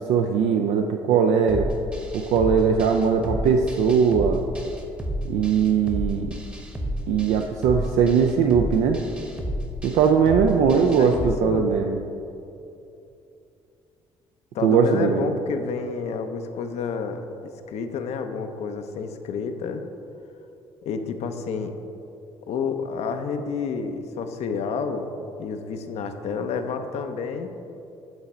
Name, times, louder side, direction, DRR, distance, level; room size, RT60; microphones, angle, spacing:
voice 1, 0.1-1.7 2.1-4.4 5.2-6.3 7.1-9.0 9.8-12.0 14.6-15.3, right 6 dB, 75° right, 4 dB, 0.4 m, -20 dB
sound 1, 1.5-11.3, equal, 10° right, 0.9 m, -31 dB
voice 2, 10.7-11.7 14.5-19.8 20.8-21.7 22.5-25.1 25.4-27.5, left 5 dB, 70° left, 6 dB, 0.5 m, -29 dB
8.0 x 3.9 x 4.2 m, 2.7 s
supercardioid pair, 75°, 12 cm